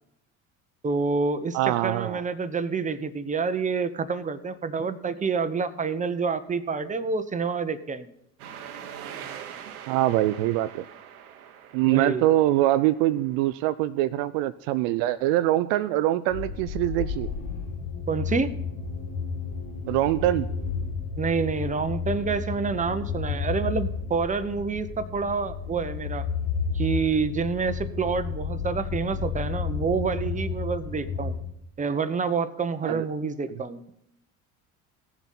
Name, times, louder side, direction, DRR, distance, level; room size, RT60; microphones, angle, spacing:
voice 1, 0.8-8.1 11.8-12.3 18.1-18.5 21.2-26.3 26.7-31.4 31.8-33.8, right 5 dB, 15° right, 10 dB, 0.9 m, -28 dB
voice 2, 1.5-2.2 9.9-10.9 11.7-17.3 19.9-20.5 32.8-33.0, right 14 dB, 60° right, 13 dB, 0.5 m, -23 dB
sound 1, 8.4-13.6, right 9 dB, 80° right, 1.0 m, -43 dB
sound 2, 16.3-31.4, left 6 dB, 65° left, 1.7 m, -32 dB
16.5 x 7.0 x 4.2 m, 0.78 s
hypercardioid pair, 65°, 43 cm